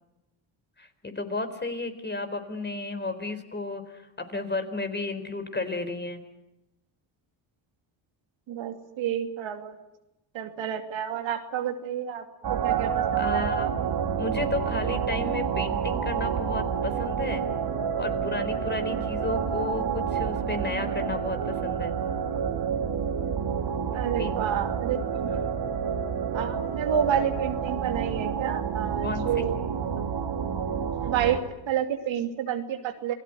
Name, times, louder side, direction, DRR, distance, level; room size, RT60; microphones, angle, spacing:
voice 1, 0.8-6.2 13.1-13.7 14.2-17.4 18.0-21.9 24.2-24.4 29.0-29.5, left 2 dB, 20° left, 8 dB, 4.3 m, -33 dB
voice 2, 8.5-9.7 10.3-12.2 12.5-13.5 23.9-25.5 26.3-29.6 30.0-30.1 31.0-33.1, right 9 dB, 70° right, 6 dB, 2.7 m, -30 dB
sound 1, 12.4-31.4, right 7 dB, 55° right, 2.9 m, -29 dB
28.0 x 18.0 x 9.1 m, 0.92 s
supercardioid pair, 75°, 47 cm